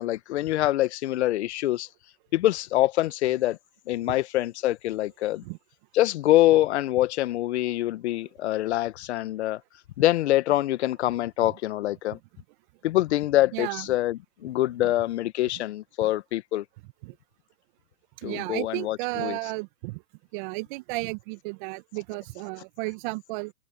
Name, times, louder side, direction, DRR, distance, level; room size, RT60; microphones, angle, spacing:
voice 1, 0.0-1.9 2.3-3.6 3.9-5.4 5.9-9.6 10.0-12.2 12.8-16.6 18.2-19.4, left 15 dB, 55° left, 1.3 m, -25 dB
voice 2, 13.5-13.9 14.8-14.9 17.0-17.1 18.2-20.0 20.3-23.5, right 25 dB, 35° right, 1.4 m, -33 dB
open air
hypercardioid pair, 130°, 40 cm